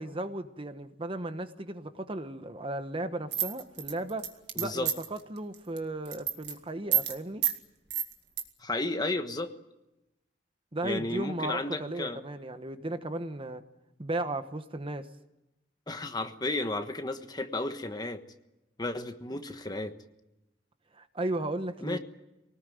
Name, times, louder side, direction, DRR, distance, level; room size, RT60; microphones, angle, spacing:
voice 1, 0.0-4.2 4.6-7.4 10.7-13.6 14.0-15.1 20.9-22.0, right 1 dB, 30° right, 9 dB, 1.1 m, -35 dB
sound 1, 3.3-5.2 5.5-5.8 6.0-6.5 6.9-7.1 7.4-7.6 7.9-8.4, right 9 dB, 65° right, 2.0 m, -29 dB
voice 2, 4.5-4.9 8.6-9.5 10.8-12.2 15.9-18.2 18.8-19.9 21.8-22.0, left 2 dB, 25° left, 8 dB, 1.3 m, -33 dB
24.5 x 19.0 x 9.3 m, 0.94 s
head